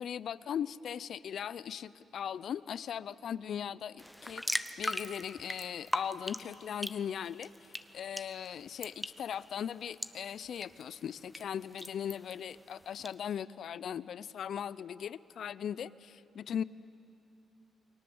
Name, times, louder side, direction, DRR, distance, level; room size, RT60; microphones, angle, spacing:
voice 1, 0.0-7.5 7.9-16.6, left 8 dB, 65° left, 18 dB, 0.6 m, -39 dB
sound 1, 4.0-13.1, equal, 5° left, 0.9 m, -41 dB
29.0 x 21.0 x 7.9 m, 2.7 s
cardioid pair, 100°, 0 cm